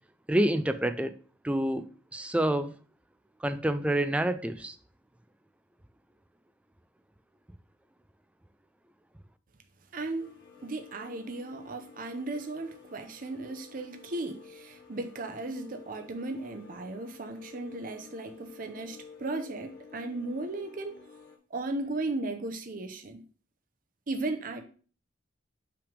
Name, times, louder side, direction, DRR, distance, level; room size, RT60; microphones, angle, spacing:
voice 1, 0.3-1.1 1.4-2.7 3.4-4.8, right 1 dB, 5° right, 0.3 m, -28 dB
voice 2, 9.9-10.3 10.6-20.9 21.5-23.2 24.1-24.6, right 2 dB, 45° right, 0.7 m, -36 dB
sound 1, 10.2-21.4, left 5 dB, 55° left, 1.1 m, -52 dB
5.8 x 3.4 x 5.0 m
head